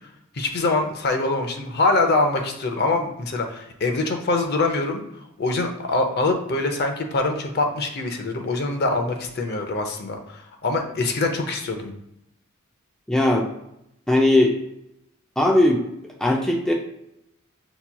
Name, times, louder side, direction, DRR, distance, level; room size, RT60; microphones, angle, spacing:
voice 1, 0.3-5.0 5.4-10.2 10.6-11.9, left 2 dB, 50° left, 4 dB, 0.6 m, -24 dB
voice 2, 13.1-13.5 14.1-14.5 15.4-15.8 16.2-16.7, left 1 dB, 5° left, -1 dB, 0.4 m, -18 dB
6.8 x 2.9 x 2.2 m, 0.82 s
head